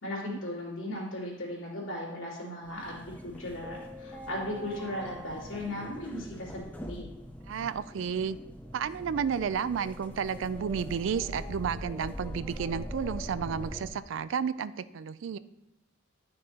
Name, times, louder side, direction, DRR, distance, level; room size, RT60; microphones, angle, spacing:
voice 1, 0.0-7.1, left 1 dB, 85° left, -5 dB, 2.9 m, -37 dB
sound 1, 2.6-13.9, equal, 10° left, 0.6 m, -42 dB
voice 2, 7.5-8.4 8.7-15.4, right 7 dB, 70° right, 16 dB, 0.3 m, -32 dB
11.5 x 6.5 x 2.8 m, 0.89 s
head